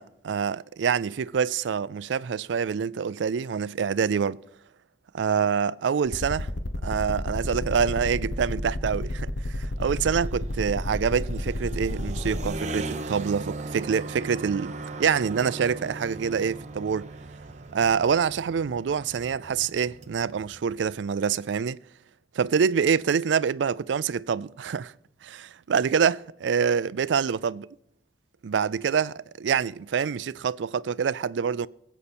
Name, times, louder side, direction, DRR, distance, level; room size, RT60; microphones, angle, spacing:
voice 1, 0.0-4.4 5.1-6.5 6.8-14.7 15.0-17.1 17.7-21.8 22.4-24.9 25.2-27.7 28.4-31.7, right 6 dB, 80° right, 0.4 m, -26 dB
sound 1, 6.0-12.5, left 1 dB, 80° left, 1.2 m, -30 dB
sound 2, 9.4-21.0, right 2 dB, 40° right, 0.8 m, -39 dB
21.5 x 8.3 x 4.3 m
head